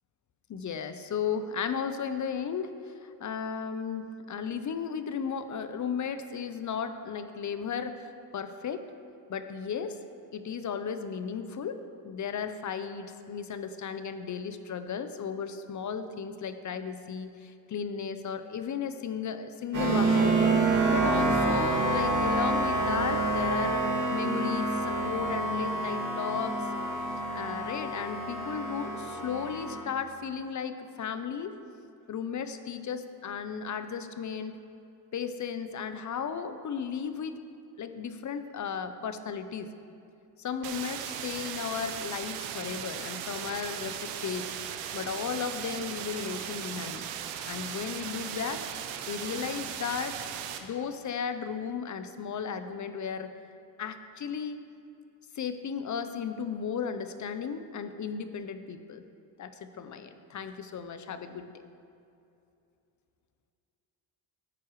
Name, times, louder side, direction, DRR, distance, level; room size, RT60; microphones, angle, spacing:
voice 1, 0.5-8.9 9.3-10.0 10.3-20.4 20.9-23.8 24.1-26.6 27.3-31.6 32.1-34.6 35.1-37.4 37.8-39.7 40.4-44.5 44.9-47.0 47.4-48.6 49.1-50.2 50.6-53.3 53.8-54.6 55.3-59.0 59.4-61.5, left 6 dB, 35° left, 10 dB, 0.8 m, -35 dB
sound 1, 19.7-29.8, right 2 dB, 35° right, 2.3 m, -27 dB
sound 2, 40.6-50.6, right 9 dB, 80° right, 0.9 m, -38 dB
13.5 x 9.2 x 3.2 m, 2.7 s
supercardioid pair, 70°, 50 cm